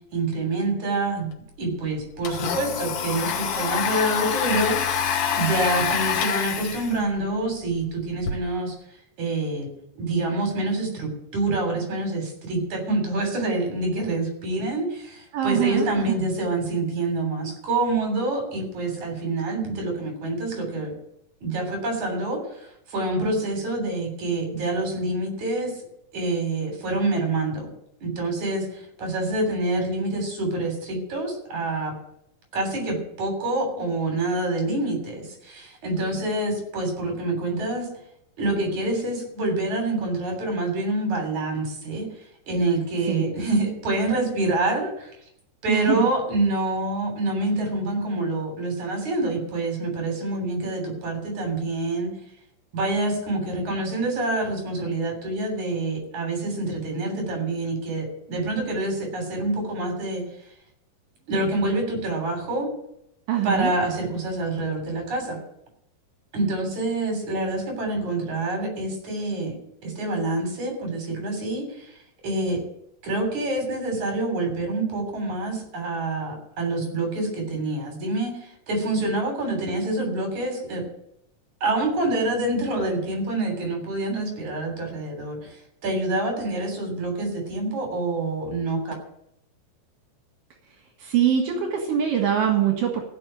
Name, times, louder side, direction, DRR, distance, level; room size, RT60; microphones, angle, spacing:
voice 1, 0.1-1.3 1.6-5.0 5.3-8.7 9.2-9.7 10.0-20.9 21.4-22.4 22.9-25.7 26.1-27.7 28.0-31.9 32.5-37.9 38.4-42.1 42.5-45.1 45.6-52.1 52.7-60.2 61.3-62.7 63.4-65.4 66.3-69.6 69.8-71.9 72.2-72.6 73.0-78.3 78.7-80.8 81.6-88.9, right 2 dB, 60° right, 3 dB, 4.6 m, -26 dB
Domestic sounds home sounds, 1.3-1.4 1.7-8.3, left 8 dB, 75° left, 2.8 m, -27 dB
voice 2, 15.3-16.2 43.1-43.2 45.7-46.1 63.3-63.8 91.0-93.0, right 9 dB, 75° right, 2 dB, 3.3 m, -23 dB
15.0 x 5.5 x 9.9 m, 0.77 s
omnidirectional pair, 3.8 m